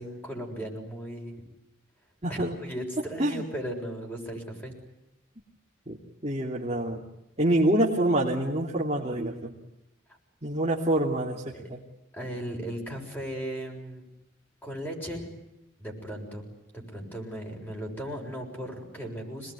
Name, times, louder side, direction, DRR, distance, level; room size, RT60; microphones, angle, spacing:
voice 1, 0.0-1.4 2.3-4.7 10.1-10.2 11.5-11.6 12.1-14.0 14.6-15.3 15.8-16.5 16.7-19.5, equal, 10° left, 1 dB, 7.0 m, -37 dB
voice 2, 2.2-2.6 3.2-3.4 5.9-6.0 6.2-7.0 7.4-9.5 10.4-11.8, right 1 dB, 30° right, -2 dB, 2.9 m, -26 dB
27.5 x 20.0 x 9.8 m, 0.89 s
head